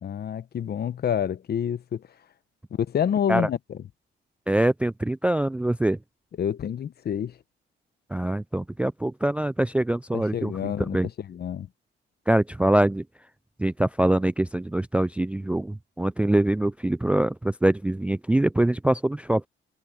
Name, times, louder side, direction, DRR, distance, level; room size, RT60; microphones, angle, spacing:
voice 1, 0.0-2.0 2.8-3.8 6.4-7.4 10.1-11.7, left 8 dB, 55° left, 1.1 m, -28 dB
voice 2, 4.5-6.0 8.1-11.1 12.3-13.0 13.6-19.5, right 1 dB, 5° right, 0.3 m, -24 dB
cardioid pair, 90°, 20 cm